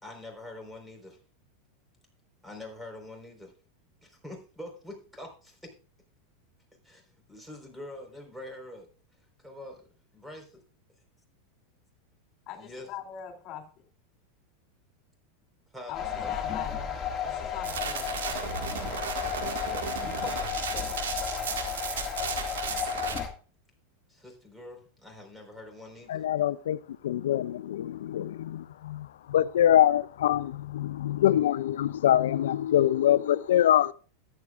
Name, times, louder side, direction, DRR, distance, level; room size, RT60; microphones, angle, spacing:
voice 1, 0.0-1.2 2.4-3.5 4.0-5.7 6.8-8.9 9.4-9.8 10.1-10.4 12.5-12.9 15.7-15.9 16.2-16.5 19.6-21.0 24.1-26.2, left 1 dB, 5° right, 4.4 m, -44 dB
voice 2, 12.5-13.8 15.9-18.4, left 9 dB, 45° left, 2.9 m, -42 dB
sound 1, 15.9-23.3, left 8 dB, 30° left, 2.0 m, -33 dB
sound 2, 17.6-23.2, right 7 dB, 75° right, 1.7 m, -35 dB
voice 3, 26.1-33.9, left 11 dB, 75° left, 0.5 m, -24 dB
13.5 x 10.5 x 2.5 m
hypercardioid pair, 95°, 0 cm